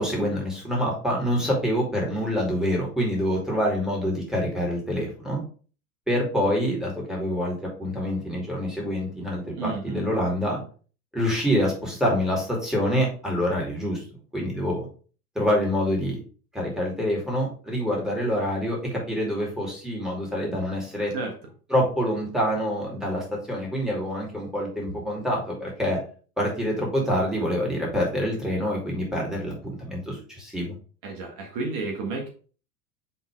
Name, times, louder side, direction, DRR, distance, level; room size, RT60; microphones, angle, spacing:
voice 1, 0.0-5.4 6.1-10.6 11.1-14.0 14.3-14.9 15.3-16.2 16.5-21.1 21.7-26.0 26.4-30.7, equal, ahead, -2 dB, 2.5 m, -26 dB
voice 2, 9.4-10.1 21.1-21.3 31.0-32.3, right 3 dB, 45° right, 0 dB, 1.6 m, -32 dB
5.4 x 3.7 x 4.7 m, 0.39 s
hypercardioid pair, 115°, 46 cm